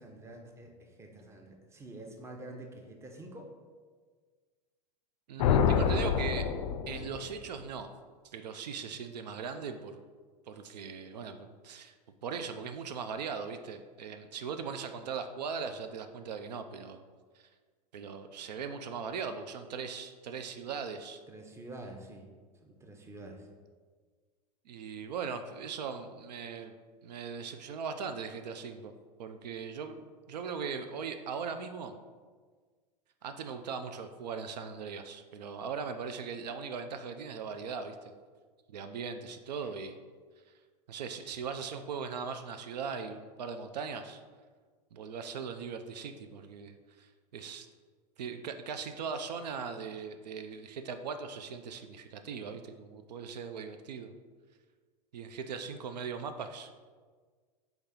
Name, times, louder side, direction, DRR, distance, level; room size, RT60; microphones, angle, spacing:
voice 1, 0.0-3.5 21.3-22.3 22.6-23.5, right 1 dB, 15° right, 3 dB, 0.6 m, -47 dB
voice 2, 5.3-6.5 6.9-7.9 8.2-10.0 10.5-11.9 12.2-17.0 17.4-17.5 17.9-21.2 24.7-26.8 27.0-28.9 29.2-32.0 33.2-38.1 38.7-40.0 40.9-44.2 44.9-47.7 48.2-54.1 55.1-56.8, right 6 dB, 80° right, 8 dB, 0.4 m, -39 dB
sound 1, 5.4-7.4, left 7 dB, 60° left, 0.4 m, -27 dB
4.1 x 3.4 x 3.7 m, 1.5 s
hypercardioid pair, 100°, 21 cm